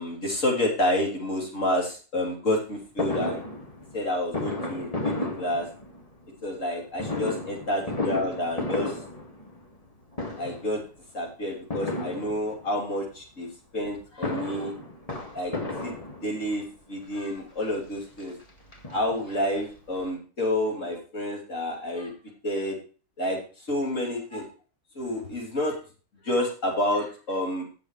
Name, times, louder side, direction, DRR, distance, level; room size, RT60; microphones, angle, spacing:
voice 1, 0.0-3.4 3.9-5.7 6.4-8.9 10.4-10.8 11.1-13.5 13.7-14.7 15.3-15.5 15.8-15.9 16.2-18.3 18.9-22.1 22.4-22.8 23.2-23.4 23.7-24.5 24.9-25.8 26.2-27.6, left 1 dB, 60° left, 0 dB, 3.4 m, -29 dB
Fireworks, 3.0-6.2 7.0-9.9 10.1-10.8 11.7-12.8 13.9-16.6 17.4-17.5 17.8-17.9 18.2-19.4 19.7-19.8 20.0-20.1, left 2 dB, 25° left, 2.0 m, -33 dB
15.0 x 7.0 x 3.1 m, 0.36 s
omnidirectional pair, 1.5 m